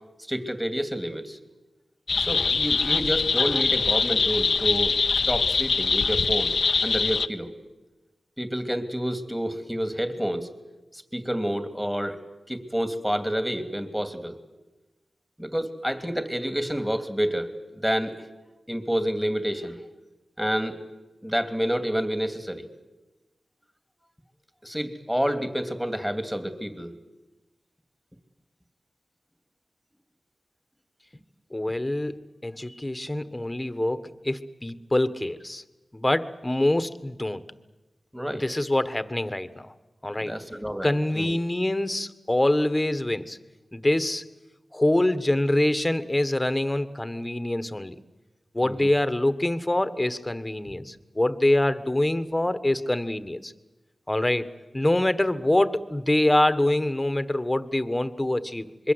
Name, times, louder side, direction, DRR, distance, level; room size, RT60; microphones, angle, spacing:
voice 1, 0.3-1.4 2.2-4.9 5.3-6.5 6.8-7.5 8.4-10.5 10.9-12.2 12.5-14.4 15.4-17.5 17.8-18.2 18.7-19.8 20.4-20.8 21.2-22.7 24.6-26.9 38.1-38.4 40.2-40.9 41.1-41.4 48.6-48.9, equal, 5° right, 8 dB, 2.8 m, -28 dB
sound 1, 2.1-7.3, left 4 dB, 75° left, 0.7 m, -23 dB
voice 2, 31.5-35.6 35.9-37.4 38.3-39.7 40.0-40.3 40.8-43.4 43.7-44.2 44.7-48.0 48.5-53.5 54.1-54.5 54.7-58.9, left 1 dB, 20° left, 12 dB, 1.5 m, -25 dB
26.0 x 22.5 x 8.1 m, 1.1 s
cardioid pair, 50°, 0 cm